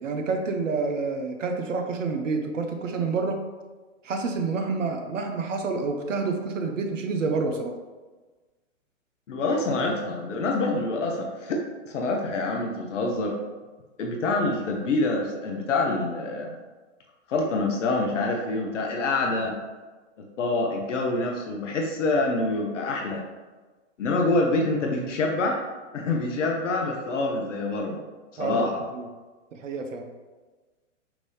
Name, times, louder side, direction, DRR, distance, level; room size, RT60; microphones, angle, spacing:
voice 1, 0.0-3.4 4.0-7.7 28.4-29.1 29.5-30.1, right 4 dB, 80° right, 4 dB, 0.8 m, -28 dB
voice 2, 9.3-13.4 14.0-16.6 17.3-19.6 20.2-23.2 24.0-25.6 25.9-28.0 28.3-28.8, left 2 dB, 75° left, 1 dB, 0.9 m, -26 dB
6.0 x 2.7 x 3.3 m, 1.3 s
hypercardioid pair, 115°, 37 cm